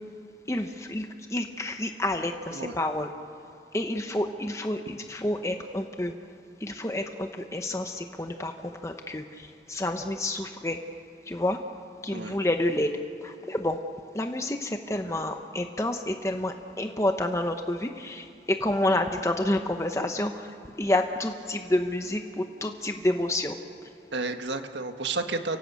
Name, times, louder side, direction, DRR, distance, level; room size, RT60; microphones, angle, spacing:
voice 1, 0.5-3.1 3.7-6.1 6.6-10.8 11.3-11.6 12.0-13.8 14.1-23.6, left 1 dB, 15° left, 5 dB, 0.9 m, -29 dB
voice 2, 24.1-25.6, right 3 dB, 80° right, 6 dB, 1.7 m, -32 dB
29.5 x 17.5 x 8.3 m, 2.6 s
head